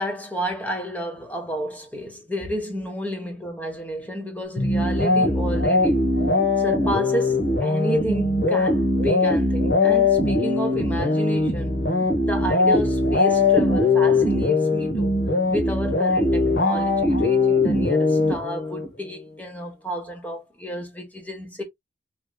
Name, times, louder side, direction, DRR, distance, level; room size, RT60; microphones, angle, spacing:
voice 1, 0.0-6.1 6.6-11.8 12.2-15.1 15.5-21.6, equal, 10° left, 1.2 m, -31 dB
sound 1, 4.6-18.9, left 2 dB, 65° left, 1.2 m, -21 dB
4.8 x 3.2 x 2.3 m
head